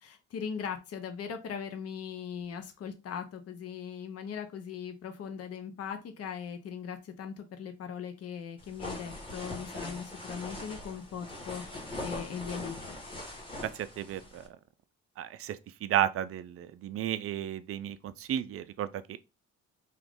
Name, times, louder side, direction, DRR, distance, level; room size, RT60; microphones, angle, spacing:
voice 1, 0.0-11.6 12.0-13.0, left 7 dB, 55° left, 0.7 m, -39 dB
sound 1, 8.6-14.5, left 1 dB, 15° left, 1.5 m, -41 dB
voice 2, 13.6-14.4 15.2-19.2, right 11 dB, 50° right, 0.4 m, -33 dB
2.9 x 2.4 x 3.5 m
cardioid pair, 90°, 30 cm